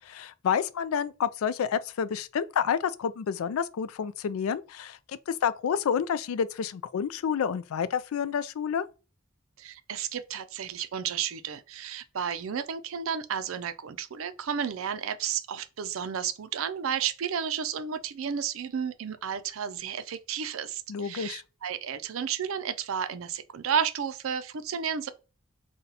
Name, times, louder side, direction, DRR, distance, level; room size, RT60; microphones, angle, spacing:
voice 1, 0.1-8.8 20.9-21.4, left 7 dB, 85° left, 0.3 m, -29 dB
voice 2, 9.6-25.1, right 7 dB, 75° right, 0.4 m, -32 dB
4.0 x 2.2 x 4.0 m
head